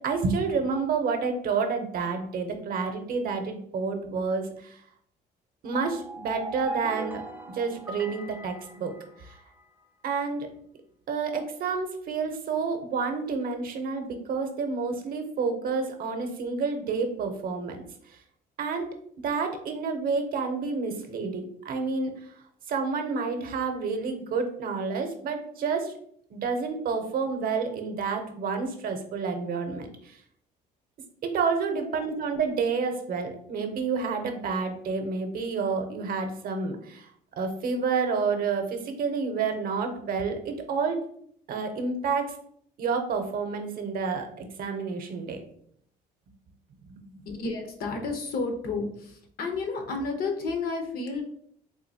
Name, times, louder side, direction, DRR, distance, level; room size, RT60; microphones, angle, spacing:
voice 1, 0.0-4.8 5.6-7.2 7.5-8.9 9.2-9.3 10.0-10.5 11.1-17.8 18.6-18.9 19.2-22.1 22.7-25.9 26.3-30.2 31.2-41.0 41.5-42.3 42.8-45.4 46.9-47.2, right 5 dB, 60° right, 5 dB, 0.6 m, -29 dB
sound 1, 5.7-9.6, right 2 dB, 10° right, 0.4 m, -39 dB
voice 2, 47.3-51.2, left 3 dB, 65° left, 4 dB, 0.8 m, -31 dB
3.7 x 2.7 x 2.7 m, 0.65 s
cardioid pair, 110°, 17 cm